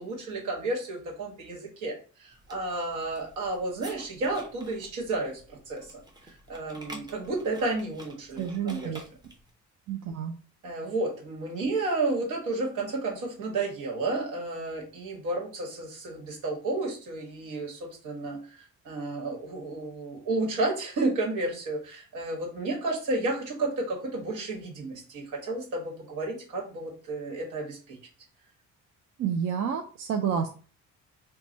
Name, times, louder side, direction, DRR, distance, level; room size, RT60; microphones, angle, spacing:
voice 1, 0.0-8.9 10.6-28.0, right 2 dB, 80° right, -1 dB, 1.3 m, -32 dB
sound 1, 2.3-9.5, right 1 dB, 15° right, 0.7 m, -49 dB
voice 2, 8.4-9.0 9.9-10.3 29.2-30.5, right 7 dB, 55° right, 4 dB, 0.4 m, -29 dB
3.1 x 2.2 x 3.9 m, 0.38 s
cardioid pair, 125°, 30 cm